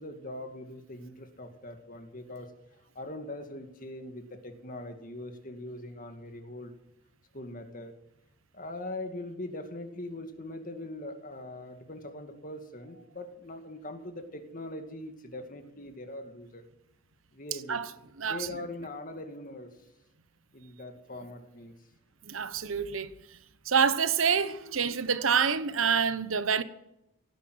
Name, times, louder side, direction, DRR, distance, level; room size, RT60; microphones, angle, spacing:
voice 1, 0.0-2.5 3.0-6.7 7.3-7.9 8.5-16.6 17.3-17.9 18.2-19.8 20.5-21.7, left 1 dB, 40° left, 2.2 m, -41 dB
voice 2, 22.2-23.1 23.7-26.6, right 6 dB, 75° right, 1.1 m, -27 dB
17.0 x 10.5 x 8.1 m
head